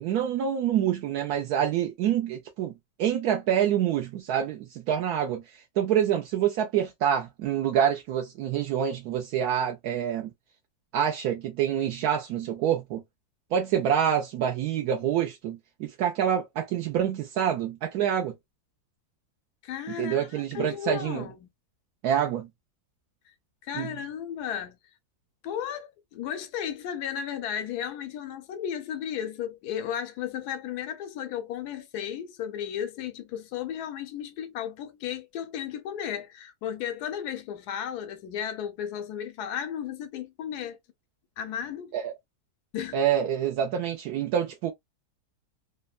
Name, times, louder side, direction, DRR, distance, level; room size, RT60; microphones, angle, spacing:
voice 1, 0.0-2.7 3.0-5.4 5.8-10.3 10.9-13.0 13.5-18.3 20.0-21.3 22.0-22.5 23.7-23.9 41.9-42.1 42.9-44.7, right 9 dB, 75° right, 1.1 m, -26 dB
voice 2, 19.6-21.5 23.6-24.8 25.4-40.8 41.4-42.0 42.7-43.0, left 9 dB, 80° left, 1.2 m, -34 dB
3.3 x 2.1 x 2.3 m
omnidirectional pair, 1.7 m